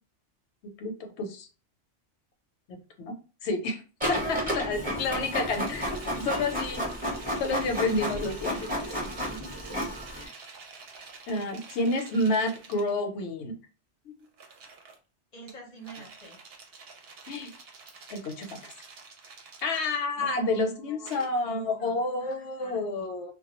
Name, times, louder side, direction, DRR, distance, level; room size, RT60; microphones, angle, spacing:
voice 1, 0.8-1.5 2.7-3.1 3.4-6.8 7.4-9.0 10.2-10.3 11.3-13.5 14.1-14.2 17.3-17.5 18.1-18.7 19.6-23.3, left 2 dB, 75° left, 5 dB, 0.9 m, -30 dB
Printer, 4.0-10.3, equal, 10° right, 0.7 m, -32 dB
voice 2, 4.3-5.3 9.2-9.4 15.3-16.4 20.2-22.9, right 2 dB, 45° left, -1 dB, 0.6 m, -48 dB
sound 1, 5.5-12.9 14.2-15.0 15.5-20.2 21.1-21.3, right 4 dB, 65° right, 0.7 m, -48 dB
2.2 x 2.1 x 2.9 m, 0.34 s
omnidirectional pair, 1.2 m